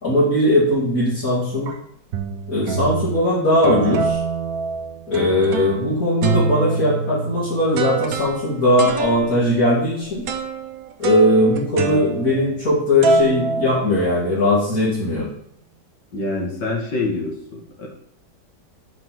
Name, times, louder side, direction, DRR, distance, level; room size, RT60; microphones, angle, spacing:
voice 1, 0.0-1.7 2.5-4.2 5.1-10.3 11.0-15.3, left 1 dB, 55° left, -10 dB, 3.1 m, -19 dB
sound 1, 0.7-1.0 1.7-1.8 2.1-3.2 3.6-5.9 6.2-12.7 13.0-14.4, right 5 dB, 60° right, 1.1 m, -25 dB
voice 2, 16.1-17.9, left 2 dB, 80° left, 0 dB, 2.3 m, -26 dB
5.3 x 4.9 x 6.0 m, 0.69 s
omnidirectional pair, 1.9 m